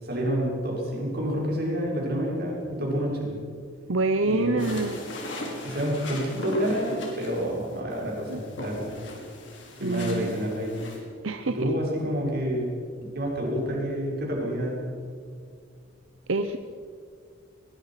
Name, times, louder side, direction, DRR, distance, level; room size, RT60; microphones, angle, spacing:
voice 1, 0.0-3.3 4.2-4.6 5.6-8.9 9.8-10.8 11.4-12.7 13.1-14.8, equal, 50° right, -2 dB, 6.4 m, -28 dB
voice 2, 3.9-5.0 8.3-8.4 9.8-10.4 11.2-11.7 16.3-16.6, right 3 dB, 85° right, 8 dB, 0.9 m, -26 dB
sound 1, 4.6-11.0, left 1 dB, 65° left, 4.9 m, -38 dB
22.0 x 22.0 x 5.9 m, 2.2 s
head